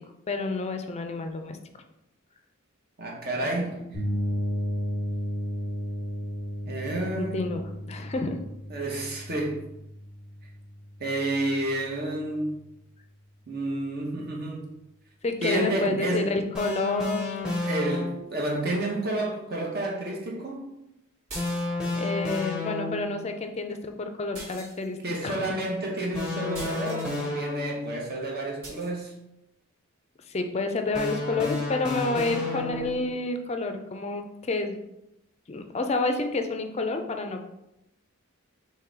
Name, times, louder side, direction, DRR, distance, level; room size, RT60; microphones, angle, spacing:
voice 1, 0.3-1.6 7.1-8.4 8.9-9.0 15.2-17.4 21.9-25.0 25.2-25.6 30.3-34.8 35.5-37.4, left 3 dB, 30° left, 6 dB, 0.4 m, -29 dB
voice 2, 3.0-3.9 6.6-7.5 8.7-9.6 11.0-12.7 13.5-14.7 15.4-16.4 17.6-20.7 25.0-29.2, right 1 dB, 45° right, -1 dB, 0.9 m, -30 dB
sound 1, 3.9-11.7, equal, 25° right, 1.1 m, -33 dB
sound 2, 16.5-18.4 21.3-23.2 26.1-28.1 30.9-33.1, left 2 dB, 5° right, 0.9 m, -31 dB
sound 3, 21.3-22.0 24.3-25.1 26.5-27.1 28.6-28.9, right 2 dB, 80° right, 1.7 m, -42 dB
3.8 x 3.1 x 4.4 m, 0.88 s
head